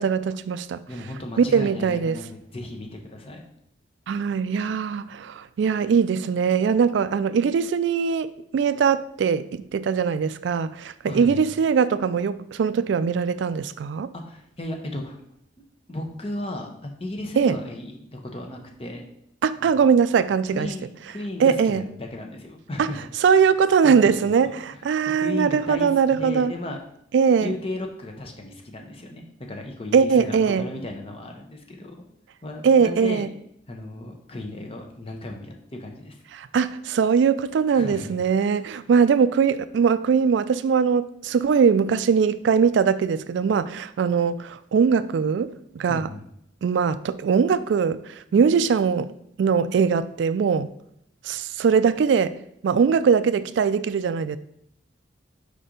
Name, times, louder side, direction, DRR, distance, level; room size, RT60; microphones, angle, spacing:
voice 1, 0.0-0.8 1.4-2.2 4.1-14.1 17.4-17.6 19.4-20.7 21.4-21.8 22.8-22.9 23.2-26.5 27.1-27.5 29.9-30.6 32.6-33.3 36.3-46.1 46.6-50.7 51.2-52.4 52.6-54.4, right 6 dB, 75° right, 0.3 m, -21 dB
voice 2, 0.9-3.4 11.1-11.5 14.1-15.2 15.9-19.0 19.6-19.8 20.5-23.1 23.8-24.1 24.4-24.5 25.1-26.8 27.4-32.0 32.4-33.3 33.7-36.2 37.7-38.2 45.9-46.3, left 1 dB, 30° left, 0.9 m, -35 dB
5.0 x 4.3 x 5.0 m
head